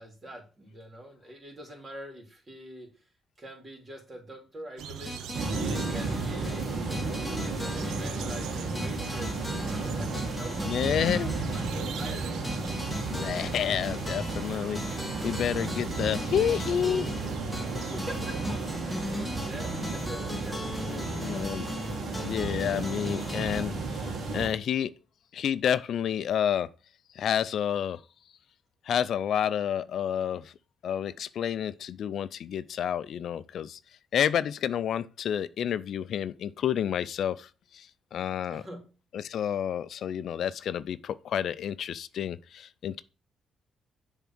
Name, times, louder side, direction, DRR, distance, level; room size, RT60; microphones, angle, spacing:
voice 1, 0.0-3.1 3.4-12.6 17.7-21.6 38.4-38.9, right 1 dB, 30° right, 2.9 m, -45 dB
sound 1, 4.8-18.8, right 8 dB, 85° right, 0.7 m, -43 dB
sound 2, 5.1-23.6, left 1 dB, 5° left, 1.2 m, -38 dB
sound 3, 5.3-24.5, right 3 dB, 60° right, 2.0 m, -34 dB
voice 2, 10.6-11.3 13.1-17.1 20.9-21.7 22.2-24.9 25.3-26.7 27.1-28.0 28.8-30.5 30.8-33.8 34.1-38.6 39.1-43.0, left 9 dB, 65° left, 0.4 m, -30 dB
7.0 x 3.6 x 5.9 m
cardioid pair, 90°, 0 cm